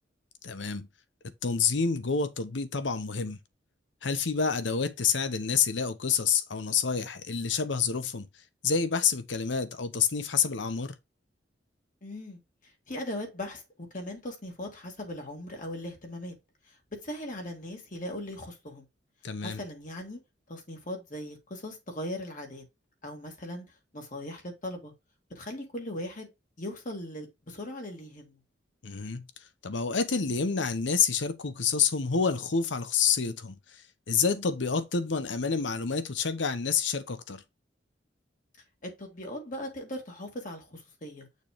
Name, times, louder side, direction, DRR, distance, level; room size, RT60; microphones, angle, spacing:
voice 1, 0.4-0.9 1.4-3.4 4.0-8.3 8.6-10.9 19.2-19.6 28.8-29.2 29.6-33.6 34.1-37.4, left 6 dB, 90° left, 0.9 m, -28 dB
voice 2, 12.0-12.4 12.9-16.4 16.7-18.8 19.4-20.2 20.5-22.6 23.0-23.7 23.9-24.9 25.3-26.3 26.6-28.4 38.8-41.3, left 1 dB, 45° left, 2.2 m, -39 dB
6.6 x 3.2 x 5.0 m
head